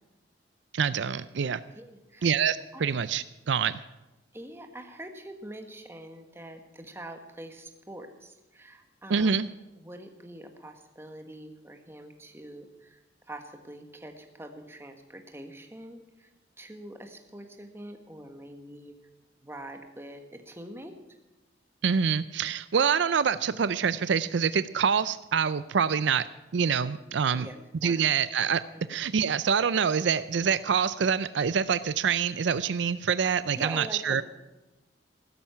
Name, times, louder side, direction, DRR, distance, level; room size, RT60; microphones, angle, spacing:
voice 1, 0.7-1.6 2.2-3.8 9.1-9.5 21.8-26.3 26.5-27.5 27.8-28.6 28.9-34.2, right 6 dB, 70° right, 15 dB, 0.5 m, -26 dB
voice 2, 1.7-2.3 2.7-2.8 4.3-9.4 9.8-13.0 13.3-16.3 16.6-18.9 19.4-20.9 27.3-28.0 28.9-29.0 33.6-34.2, right 1 dB, 15° right, 5 dB, 1.5 m, -44 dB
15.5 x 13.0 x 5.8 m, 1.0 s
head